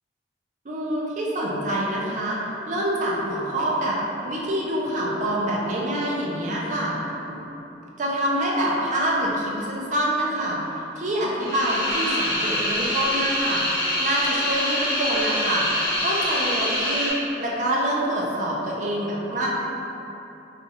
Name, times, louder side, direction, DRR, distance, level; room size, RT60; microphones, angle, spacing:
voice 1, 0.6-2.4 2.7-4.0 4.2-7.0 7.3-7.4 8.0-10.6 11.0-13.6 14.0-19.6, right 1 dB, 40° right, -4 dB, 0.5 m, -26 dB
sound 1, 11.4-17.1, left 1 dB, 55° left, 1.2 m, -25 dB
4.1 x 2.4 x 2.7 m, 3.0 s
head